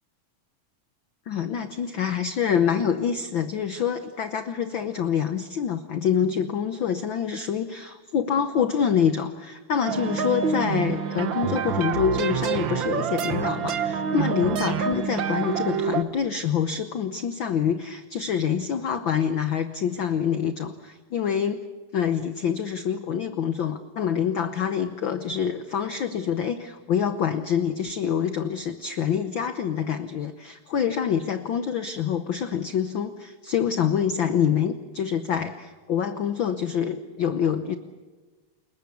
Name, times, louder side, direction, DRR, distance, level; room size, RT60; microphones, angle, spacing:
voice 1, 1.3-21.6 21.9-37.8, left 8 dB, 90° left, 9 dB, 1.0 m, -26 dB
sound 1, 9.9-16.0, right 6 dB, 55° right, 1.4 m, -27 dB
29.5 x 21.0 x 8.5 m, 1.3 s
omnidirectional pair, 3.6 m